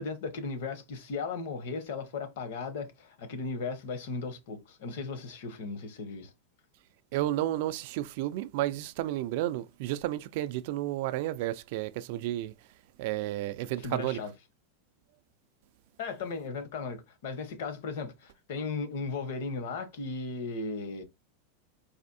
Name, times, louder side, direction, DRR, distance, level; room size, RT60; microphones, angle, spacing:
voice 1, 0.0-6.3 13.8-14.3 16.0-21.0, left 4 dB, 60° left, 0.9 m, -36 dB
voice 2, 7.1-12.5 13.0-14.2, right 14 dB, 45° right, 0.3 m, -32 dB
4.1 x 2.6 x 2.6 m
supercardioid pair, 175°, 0 cm